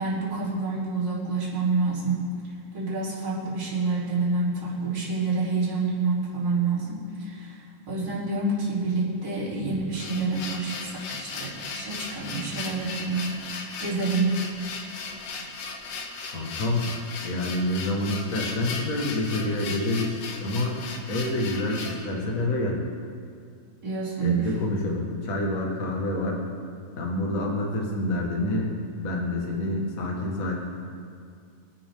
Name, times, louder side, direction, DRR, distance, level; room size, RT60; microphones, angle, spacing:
voice 1, 0.0-2.2 2.7-7.6 7.9-14.4 23.8-24.5, right 3 dB, 25° right, -9 dB, 4.1 m, -28 dB
sound 1, 9.9-22.0, left 4 dB, 80° left, 1.5 m, -37 dB
voice 2, 16.3-16.9 17.2-20.8 21.1-22.8 24.2-26.4 27.0-28.7 29.0-30.5, left 1 dB, 55° left, -1 dB, 0.9 m, -27 dB
24.5 x 10.0 x 3.8 m, 2.3 s
omnidirectional pair, 4.8 m